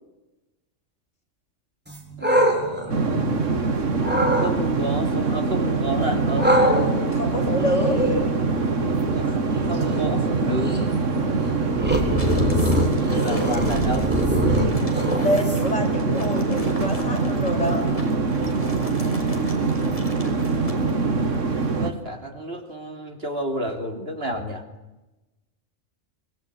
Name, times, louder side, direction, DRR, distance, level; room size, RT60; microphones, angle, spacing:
sound 1, 1.9-3.6 4.0-4.5 6.4-15.9, equal, 10° right, 4.5 m, -25 dB
voice 1, 2.2-3.3 4.4-6.7 9.1-10.8 12.6-14.2 21.7-24.6, right 1 dB, 50° right, 4 dB, 3.3 m, -31 dB
sound 2, 2.9-21.9, right 4 dB, 75° right, 2.1 m, -24 dB
voice 2, 7.1-8.2 11.1-11.6 14.8-17.9, left 1 dB, 70° left, 1 dB, 5.7 m, -26 dB
sound 3, 12.2-21.0, left 1 dB, 25° left, 4.2 m, -40 dB
25.0 x 22.0 x 8.4 m, 1.0 s
omnidirectional pair, 1.3 m